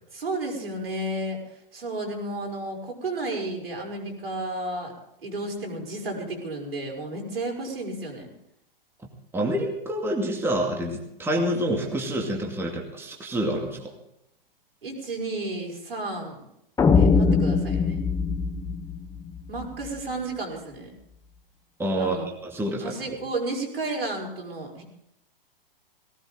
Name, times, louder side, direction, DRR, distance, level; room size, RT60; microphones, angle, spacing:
voice 1, 0.1-1.4 1.7-4.9 5.2-8.3 14.8-16.4 17.0-18.0 19.5-20.9 22.0-22.3 22.8-24.8, right 2 dB, 80° right, 0 dB, 6.1 m, -32 dB
voice 2, 9.3-13.9 21.8-23.2, right 1 dB, 10° right, 0 dB, 2.5 m, -27 dB
sound 1, 16.8-19.9, left 5 dB, 10° left, 0.9 m, -22 dB
19.0 x 18.5 x 3.8 m, 0.80 s
hypercardioid pair, 120°, 29 cm